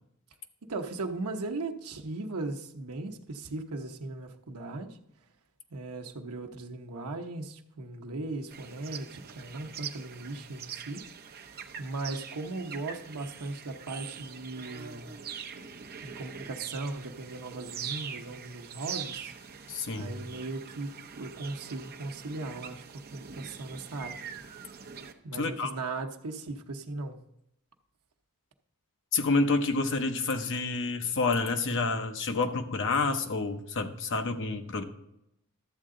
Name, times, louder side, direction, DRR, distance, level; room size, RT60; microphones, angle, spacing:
voice 1, 0.7-5.0 5.7-15.1 16.0-19.3 20.0-22.8 23.1-24.2 25.2-27.2, right 2 dB, 80° right, 5 dB, 0.9 m, -38 dB
sound 1, 8.5-25.1, right 7 dB, 45° right, 0.8 m, -43 dB
voice 2, 19.7-20.2 25.4-25.7 29.1-34.8, left 3 dB, 55° left, 6 dB, 0.9 m, -28 dB
12.0 x 7.7 x 3.7 m, 0.82 s
head